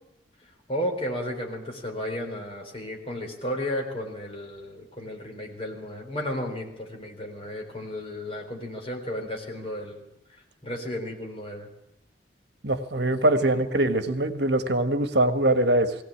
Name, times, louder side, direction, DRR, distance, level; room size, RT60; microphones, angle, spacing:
voice 1, 0.7-10.0 10.3-11.7 13.3-13.7, left 1 dB, 30° left, 2 dB, 4.1 m, -33 dB
voice 2, 12.6-15.9, right 1 dB, 65° right, 9 dB, 1.5 m, -23 dB
20.5 x 17.0 x 8.6 m, 0.86 s
head